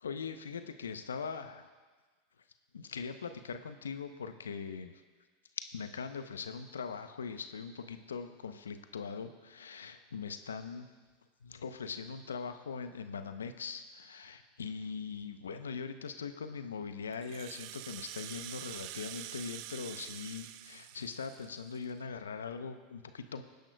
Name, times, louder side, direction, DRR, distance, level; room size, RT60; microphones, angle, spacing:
voice 1, 0.0-1.7 2.7-4.9 5.7-10.9 11.4-23.4, left 5 dB, 90° left, 9 dB, 0.7 m, -41 dB
Rattle (instrument), 17.1-21.9, right 15 dB, 60° right, 0.4 m, -46 dB
20.5 x 10.5 x 2.3 m, 1.4 s
hypercardioid pair, 95°, 0 cm